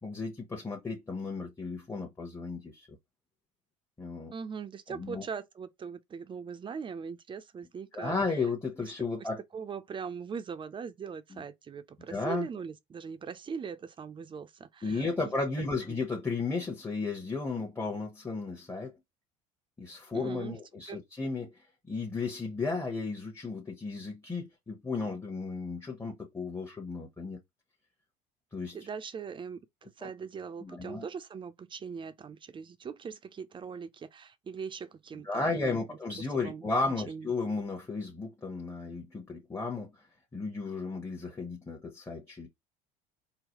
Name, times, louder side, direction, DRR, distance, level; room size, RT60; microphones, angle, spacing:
voice 1, 0.0-2.9 4.0-4.3 4.9-5.2 7.9-9.4 11.3-11.4 12.1-12.5 14.8-18.9 19.8-21.5 21.9-27.4 28.5-28.8 30.0-30.1 30.6-31.0 35.2-39.9 40.3-42.5, left 3 dB, 15° left, 1.0 m, -34 dB
voice 2, 4.3-8.2 9.2-15.3 15.9-16.0 20.1-20.6 20.9-21.0 28.7-36.7 37.1-37.3, right 6 dB, 30° right, 0.5 m, -41 dB
3.8 x 2.1 x 3.0 m
supercardioid pair, 80°, 17 cm